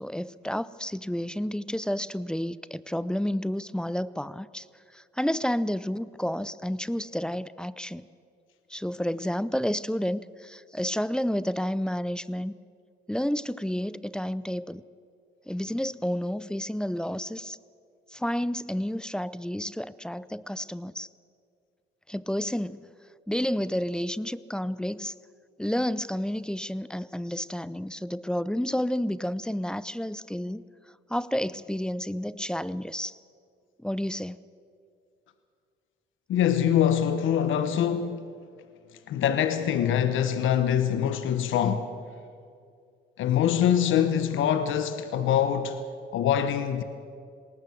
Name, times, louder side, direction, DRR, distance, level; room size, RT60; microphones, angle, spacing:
voice 1, 0.0-4.6 4.9-8.0 8.7-12.5 13.1-14.8 15.5-17.6 18.1-21.1 22.1-22.8 23.3-25.1 25.6-30.6 31.1-33.2 33.8-34.4, equal, 5° left, 0.5 m, -30 dB
voice 2, 36.3-38.3 39.1-41.9 43.2-45.8 46.1-46.8, left 9 dB, 80° left, 1.1 m, -24 dB
20.0 x 18.5 x 7.8 m
cardioid pair, 90°, 20 cm